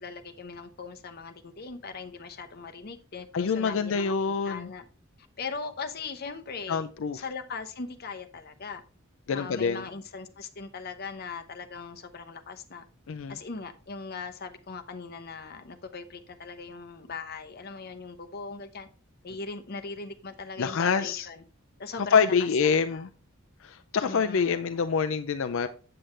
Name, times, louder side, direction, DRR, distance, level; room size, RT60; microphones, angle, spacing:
voice 1, 0.0-4.8 5.4-6.9 7.1-8.8 9.3-12.8 13.3-18.9 19.2-21.4 21.8-22.3 22.6-23.1 24.0-24.7, left 4 dB, 45° left, 0.8 m, -40 dB
voice 2, 3.3-4.7 6.7-7.2 9.3-9.8 13.1-13.4 20.6-21.3 22.0-23.1 23.6-25.7, left 6 dB, 65° left, 0.4 m, -26 dB
7.8 x 7.7 x 3.2 m
head